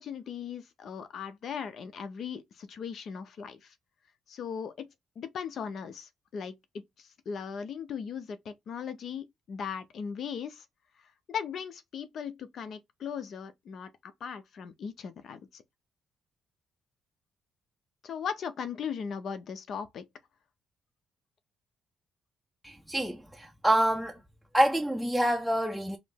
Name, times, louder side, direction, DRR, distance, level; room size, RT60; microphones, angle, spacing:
voice 1, 0.0-3.7 4.3-4.9 5.2-6.6 7.0-10.6 11.3-15.6 18.0-20.0, left 7 dB, 60° left, 0.7 m, -38 dB
voice 2, 22.6-24.2 24.5-26.0, right 1 dB, ahead, 0.6 m, -27 dB
4.8 x 2.0 x 3.5 m
cardioid pair, 90°, 0 cm